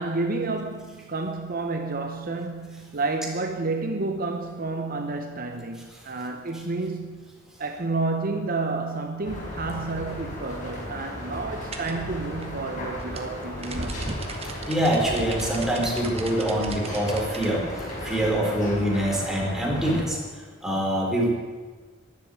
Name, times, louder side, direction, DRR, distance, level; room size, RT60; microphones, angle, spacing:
voice 1, 0.0-7.3 7.6-14.1, right 3 dB, 45° right, 1.0 m, -30 dB
sound 1, 9.2-20.0, left 1 dB, 40° left, 5.2 m, -36 dB
sound 2, 11.7-17.5, right 2 dB, 30° right, 1.6 m, -37 dB
voice 2, 14.7-21.3, right 1 dB, ahead, 3.9 m, -25 dB
11.5 x 11.5 x 9.4 m
head